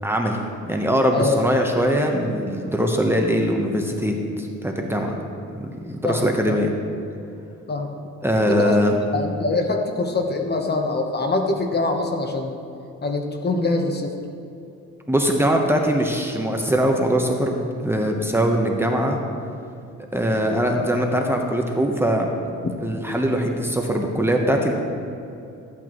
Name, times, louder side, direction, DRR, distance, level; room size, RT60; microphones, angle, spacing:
voice 1, 0.0-0.4 0.6-5.2 5.5-6.7 8.2-8.9 15.1-19.2 20.1-22.3 22.8-24.7, equal, 10° right, 1 dB, 1.0 m, -21 dB
voice 2, 6.0-6.6 7.7-7.9 8.4-8.8 9.1-12.5 13.0-14.1, left 3 dB, 35° left, 3 dB, 1.1 m, -24 dB
14.0 x 8.7 x 3.1 m, 2.7 s
cardioid pair, 90°, 30 cm